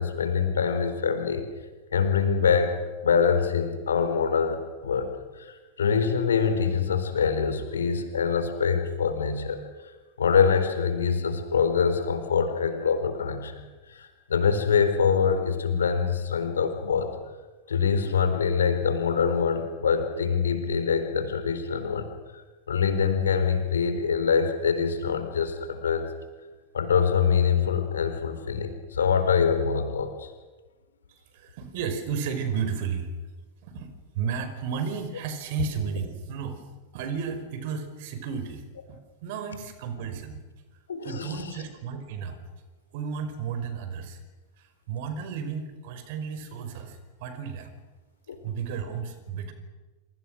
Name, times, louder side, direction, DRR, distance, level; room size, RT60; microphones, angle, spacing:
voice 1, 0.0-1.5 1.9-9.9 10.2-13.6 13.9-17.1 17.7-26.1 26.7-30.3 40.9-41.5 48.3-48.4, left 6 dB, 70° left, 8 dB, 4.3 m, -25 dB
voice 2, 31.1-33.1 33.6-33.9 34.1-36.6 36.9-38.6 38.9-40.4 41.0-42.4 42.9-44.2 44.6-47.7 48.4-49.5, right 6 dB, 50° right, 9 dB, 5.1 m, -33 dB
28.5 x 28.0 x 6.5 m, 1.2 s
figure-of-eight pair, 90°, 0 cm